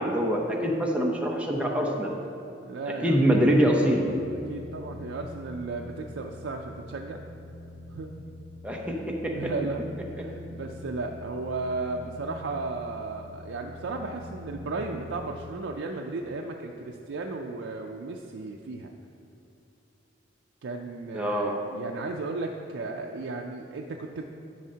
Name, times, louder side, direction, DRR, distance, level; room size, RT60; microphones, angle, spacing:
voice 1, 0.0-2.1 3.0-4.1 8.6-9.3 21.1-21.5, equal, 5° right, -1 dB, 0.7 m, -24 dB
voice 2, 2.6-3.7 4.5-7.2 7.9-8.1 8.8-8.9 9.2-9.8 10.1-18.9 20.6-24.2, right 3 dB, 85° right, 2 dB, 0.4 m, -35 dB
sound 1, 3.9-15.6, left 2 dB, 40° right, 1.5 m, -44 dB
10.5 x 6.4 x 2.8 m, 2.9 s
head